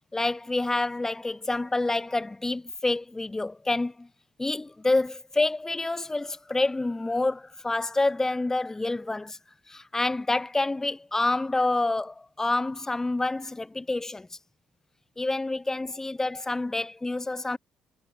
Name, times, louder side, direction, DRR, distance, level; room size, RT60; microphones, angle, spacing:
voice 1, 0.1-4.1 4.4-9.3 9.7-14.3 15.2-17.6, left 2 dB, 15° left, 0.9 m, -28 dB
figure-of-eight pair, 45°, 3 cm